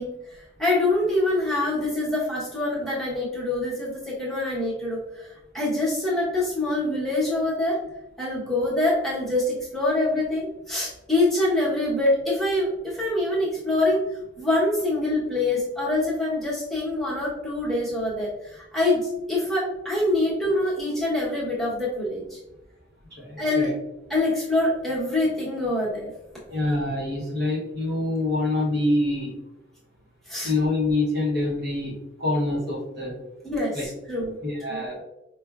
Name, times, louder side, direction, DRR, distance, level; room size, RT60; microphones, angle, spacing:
voice 1, 0.0-7.8 8.2-14.0 14.4-22.4 23.4-23.7 24.1-26.1 30.3-30.5 33.4-34.4 34.7-34.8, left 2 dB, ahead, -9 dB, 1.0 m, -25 dB
voice 2, 23.2-23.7 26.5-29.3 30.4-33.1 33.7-33.9 34.4-35.0, left 2 dB, 55° right, -4 dB, 0.9 m, -25 dB
4.9 x 2.1 x 2.3 m, 0.91 s
head